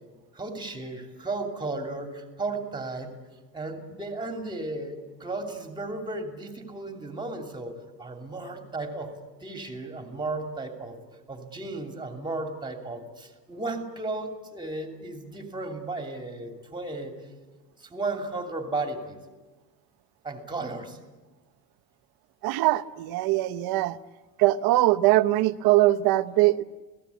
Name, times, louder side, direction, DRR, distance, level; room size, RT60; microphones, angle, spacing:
voice 1, 0.3-3.1 3.5-7.7 8.0-9.1 9.4-11.0 11.3-17.1 17.8-19.2 20.2-21.0, right 2 dB, 10° right, 4 dB, 2.8 m, -34 dB
voice 2, 22.4-24.0 24.4-26.6, right 16 dB, 60° right, 13 dB, 1.0 m, -22 dB
28.5 x 17.5 x 8.4 m, 1.3 s
cardioid pair, 170°, 41 cm